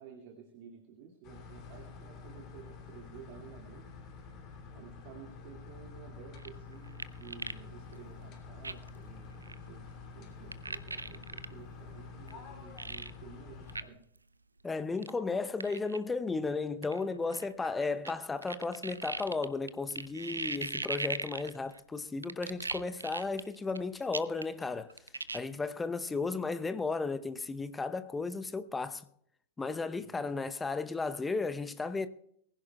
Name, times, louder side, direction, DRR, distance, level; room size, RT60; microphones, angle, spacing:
voice 1, 0.0-3.9 4.7-14.0 29.9-30.3, right 7 dB, 45° right, 2.1 m, -53 dB
sound 1, 1.2-13.8, left 5 dB, 35° left, 2.9 m, -48 dB
sound 2, 6.3-7.6 7.9-8.0 8.6-9.0 9.4-9.6 10.5-11.5 12.3-12.4 12.8-13.1 13.7-13.8 14.1-14.2 15.0-15.1 15.6-16.0 16.8-18.1 18.4-21.8 22.2-23.8 24.1-24.6 24.9-25.4, right 3 dB, 80° right, 0.6 m, -38 dB
voice 2, 14.6-24.9 25.3-29.1 29.6-32.1, left 4 dB, 10° left, 0.8 m, -34 dB
23.0 x 16.0 x 2.3 m
figure-of-eight pair, 90°, 0 cm